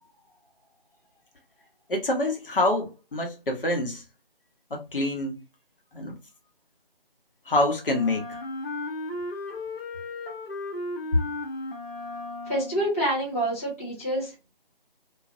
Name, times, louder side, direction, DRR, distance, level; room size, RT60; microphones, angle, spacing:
voice 1, 1.9-4.0 4.7-5.4 5.9-6.2 7.5-8.3, left 1 dB, 65° left, 1.0 m, -26 dB
Wind instrument woodwind instrument, 7.9-13.0, left 2 dB, 90° left, 0.8 m, -35 dB
voice 2, 12.5-14.3, right 1 dB, 15° left, 0.6 m, -27 dB
2.4 x 2.0 x 2.5 m
figure-of-eight pair, 160°, 29 cm